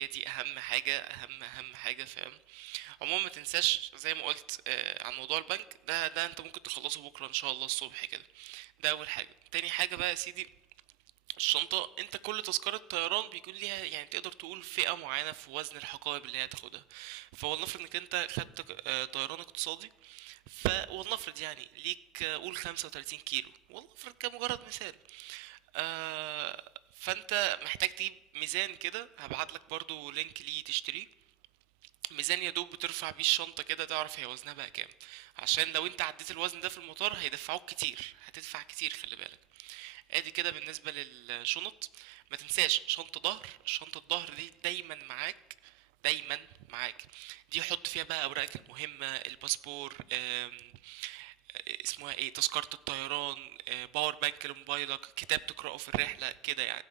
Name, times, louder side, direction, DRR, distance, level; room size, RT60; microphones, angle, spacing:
voice 1, 0.0-10.5 11.4-26.7 26.9-31.1 32.0-45.3 45.6-56.8, right 18 dB, 70° right, 0.4 m, -35 dB
16.5 x 5.5 x 3.5 m
hypercardioid pair, 70°, 0 cm